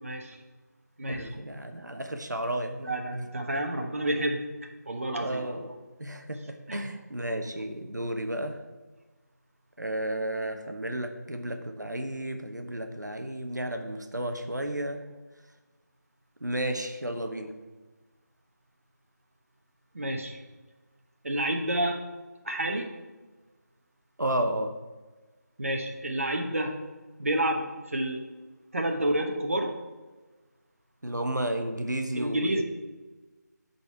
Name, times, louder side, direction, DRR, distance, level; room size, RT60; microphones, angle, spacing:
voice 1, 0.0-0.4 1.0-1.3 2.8-4.4 4.9-5.4 6.7-6.9 19.9-20.4 21.2-22.0 22.4-22.9 25.6-26.7 27.2-28.2 28.7-29.7 32.2-32.6, right 1 dB, 50° right, 3 dB, 1.1 m, -29 dB
voice 2, 1.1-2.9 5.1-5.7 6.0-8.6 9.8-15.0 16.4-17.5 24.2-24.7 31.0-32.6, right 1 dB, 75° right, 5 dB, 0.9 m, -32 dB
10.0 x 4.2 x 4.6 m, 1.3 s
figure-of-eight pair, 160°, 10 cm